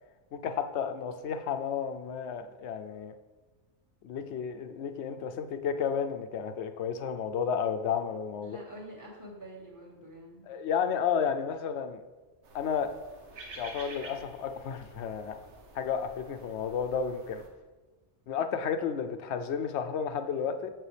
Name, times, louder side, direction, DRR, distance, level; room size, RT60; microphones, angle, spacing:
voice 1, 0.3-3.1 4.0-8.6 10.5-12.0 12.5-12.9 13.6-15.4 15.7-17.4 18.3-20.7, left 7 dB, 80° left, 8 dB, 0.9 m, -32 dB
voice 2, 8.4-10.5, equal, 15° right, -3 dB, 1.9 m, -46 dB
sound 1, 12.4-17.5, right 3 dB, 90° right, 1.3 m, -49 dB
7.6 x 7.4 x 3.3 m, 1.2 s
omnidirectional pair, 1.2 m